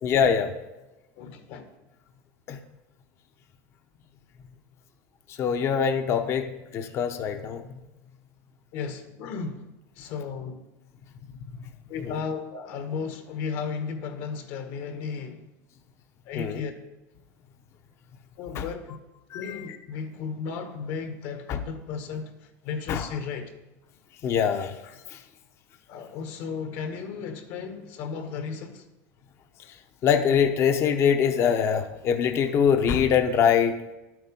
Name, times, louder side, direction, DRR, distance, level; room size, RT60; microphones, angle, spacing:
voice 1, 0.0-0.5 2.5-2.6 5.4-7.6 12.0-12.1 16.3-16.6 18.5-18.6 19.3-19.6 21.5-21.6 22.9-23.1 24.2-24.7 30.0-33.8, left 7 dB, 35° left, 0.8 m, -23 dB
voice 2, 1.2-1.7 8.7-9.6 10.0-10.6 11.9-15.4 16.3-16.7 18.4-18.9 19.3-22.3 22.6-23.5 25.9-28.8, left 5 dB, 60° left, 1.5 m, -34 dB
11.5 x 7.8 x 5.4 m
cardioid pair, 155°, 8 cm